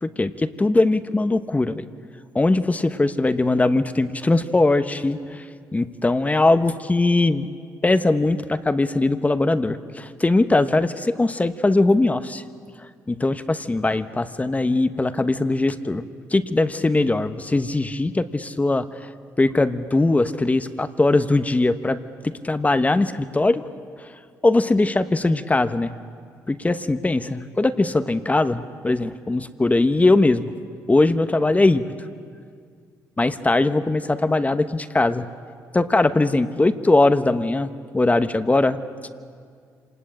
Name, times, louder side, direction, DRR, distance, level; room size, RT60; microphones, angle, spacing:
voice 1, 0.0-1.8 2.3-5.4 5.7-7.5 7.8-12.4 13.1-16.1 16.3-18.8 19.4-22.0 22.2-23.7 24.0-24.1 24.4-25.9 26.5-30.5 30.9-31.8 33.2-35.3 35.7-38.8, left 2 dB, 20° left, 11 dB, 1.1 m, -20 dB
26.5 x 19.5 x 8.7 m, 2.2 s
supercardioid pair, 65°, 7 cm